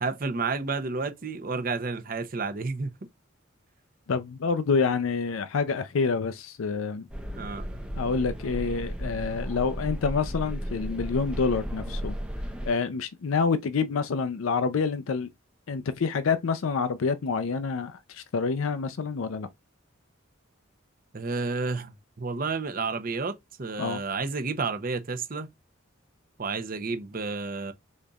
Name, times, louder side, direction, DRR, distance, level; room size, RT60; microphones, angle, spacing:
voice 1, 0.0-2.9 7.3-7.7 21.1-25.5 26.4-27.7, right 4 dB, 45° right, 0.6 m, -31 dB
voice 2, 4.1-7.1 8.0-12.2 12.7-15.3 15.7-19.5 23.8-24.0, left 5 dB, 85° left, 0.5 m, -27 dB
sound 1, 7.1-12.7, equal, 5° right, 0.6 m, -34 dB
5.1 x 3.9 x 2.3 m
head